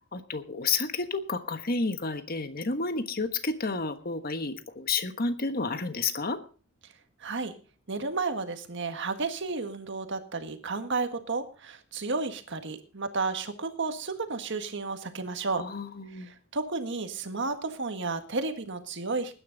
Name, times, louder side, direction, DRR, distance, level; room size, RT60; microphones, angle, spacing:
voice 1, 0.1-6.4 15.6-16.3, left 4 dB, 45° left, 9 dB, 1.3 m, -31 dB
voice 2, 7.2-7.5 7.9-15.7 16.1-19.3, right 3 dB, 60° right, 8 dB, 1.6 m, -32 dB
20.0 x 10.0 x 3.9 m, 0.37 s
head